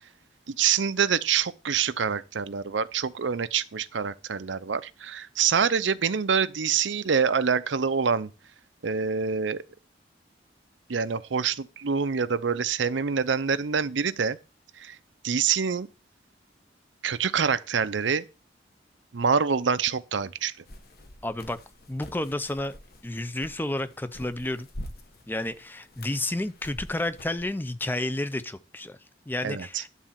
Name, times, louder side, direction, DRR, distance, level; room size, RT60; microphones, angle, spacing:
voice 1, 0.5-8.3 8.8-9.6 10.9-14.4 14.8-15.0 15.2-15.9 17.0-18.2 19.1-20.5 29.4-29.8, right 6 dB, 85° right, 0.6 m, -26 dB
sound 1, 20.6-27.4, left 1 dB, 55° left, 1.2 m, -46 dB
voice 2, 21.2-21.6 21.9-22.8 23.0-24.7 25.3-29.0 29.3-29.9, left 1 dB, 10° left, 0.5 m, -31 dB
11.0 x 4.1 x 7.4 m
head